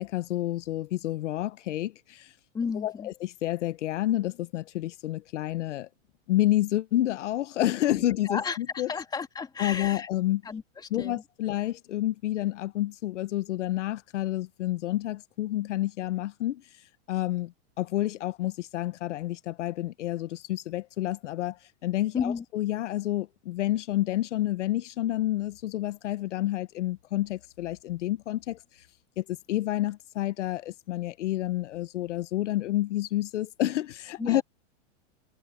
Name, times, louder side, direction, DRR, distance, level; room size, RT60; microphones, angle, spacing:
voice 1, 0.0-2.3 2.7-5.9 6.3-8.9 9.6-10.4 10.9-16.6 17.1-28.6 29.2-34.4, left 14 dB, 80° left, 1.0 m, -29 dB
voice 2, 2.5-3.1 8.2-10.1 10.4-11.2 22.1-22.4 34.2-34.4, left 5 dB, 10° left, 2.6 m, -33 dB
supercardioid pair, 160°, 35 cm